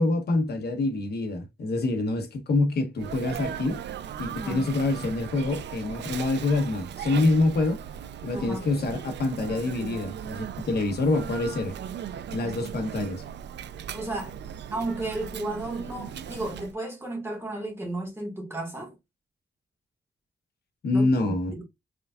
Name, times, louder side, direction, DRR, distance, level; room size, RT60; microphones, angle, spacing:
voice 1, 0.0-3.8 4.2-7.8 8.2-11.8 12.3-13.2 20.8-21.5, left 2 dB, 65° left, 1.1 m, -26 dB
Sneeze, 3.0-16.7, right 9 dB, 80° right, 0.4 m, -38 dB
voice 2, 4.4-4.7 8.3-8.7 13.9-14.4 14.7-19.0 20.9-21.6, right 2 dB, 15° right, 1.7 m, -33 dB
5.0 x 3.6 x 2.3 m
wide cardioid pair, 165°, 18 cm